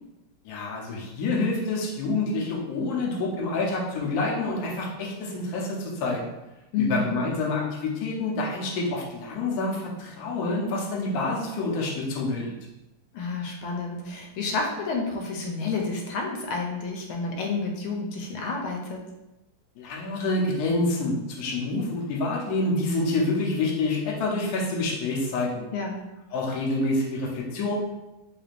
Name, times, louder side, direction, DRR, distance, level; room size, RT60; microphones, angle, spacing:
voice 1, 0.4-6.3 6.8-12.5 19.8-25.7 26.3-27.7, left 2 dB, 60° left, -3 dB, 1.0 m, -27 dB
voice 2, 6.7-7.2 13.1-19.0 25.7-26.0, left 4 dB, 85° left, 1 dB, 1.4 m, -30 dB
3.3 x 3.2 x 2.4 m, 0.99 s
omnidirectional pair, 2.3 m